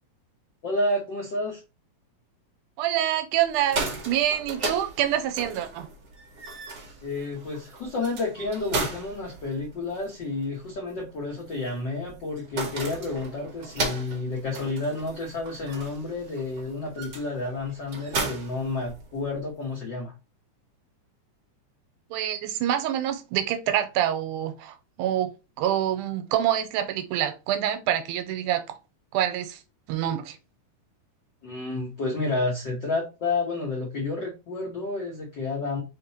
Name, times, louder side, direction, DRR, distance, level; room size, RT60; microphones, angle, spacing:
voice 1, 0.6-1.6 7.0-20.1 31.4-35.8, left 2 dB, 75° left, 1.0 m, -30 dB
voice 2, 2.8-5.9 22.1-25.3 25.6-28.6 29.1-29.6 29.9-30.4, right 11 dB, 90° right, 2.1 m, -26 dB
sound 1, 3.5-19.4, right 3 dB, 65° right, 1.0 m, -36 dB
4.4 x 3.6 x 2.8 m
omnidirectional pair, 3.6 m